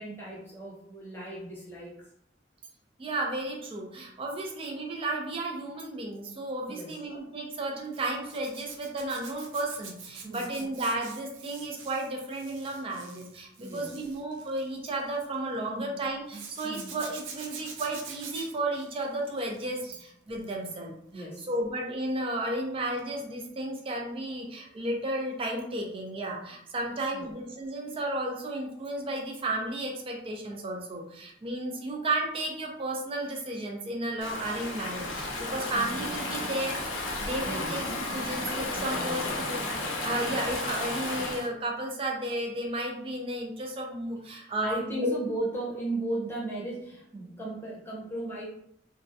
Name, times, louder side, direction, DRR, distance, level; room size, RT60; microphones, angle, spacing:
voice 1, 0.0-2.1 6.7-7.0 10.2-10.6 13.6-13.9 15.7-16.0 16.3-17.0 20.6-20.7 21.1-21.5 27.1-27.2 35.7-36.1 37.4-37.8 38.7-39.5 44.3-48.4, right 1 dB, 10° left, -6 dB, 0.7 m, -37 dB
voice 2, 3.0-20.9 21.5-36.8 37.2-37.8 38.1-39.6 40.0-45.1, right 1 dB, 30° right, 0 dB, 0.4 m, -33 dB
Zipper (clothing), 7.9-15.4 16.3-20.0 20.3-20.7 23.0-23.1 23.4-23.5, right 5 dB, 90° right, 0.5 m, -46 dB
Stream / Ocean, 34.2-41.5, left 2 dB, 90° left, 0.5 m, -33 dB
2.3 x 2.0 x 2.7 m, 0.73 s
head